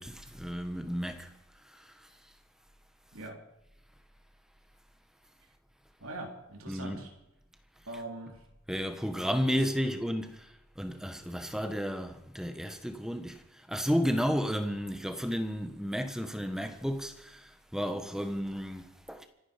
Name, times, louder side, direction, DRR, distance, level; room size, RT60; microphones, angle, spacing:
voice 1, 0.0-1.3 1.7-2.1 6.7-7.0 8.7-19.3, equal, ahead, 1.3 m, -33 dB
voice 2, 6.0-7.1 7.9-8.4 9.3-9.4 9.8-10.0, right 2 dB, 75° right, 3.5 m, -42 dB
25.5 x 10.0 x 5.2 m
head